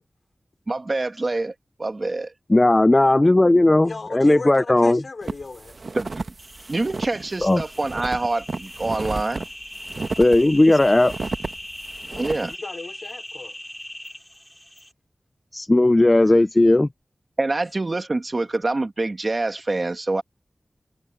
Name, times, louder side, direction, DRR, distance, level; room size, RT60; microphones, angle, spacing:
voice 1, 0.7-1.5 1.8-2.3 6.0-6.3 6.7-9.4 12.2-12.5 17.4-20.2, right 2 dB, 45° right, 1.9 m, -25 dB
voice 2, 2.5-5.0 7.4-7.6 10.2-11.1 15.5-16.9, left 2 dB, 25° left, 0.4 m, -16 dB
voice 3, 3.8-5.8 10.4-10.9 12.1-13.6, left 3 dB, 65° left, 4.0 m, -37 dB
sound 1, 5.2-12.5, right 3 dB, 65° right, 1.1 m, -33 dB
sound 2, 6.4-14.9, left 1 dB, 10° left, 5.0 m, -40 dB
wide cardioid pair, 90°, 0 cm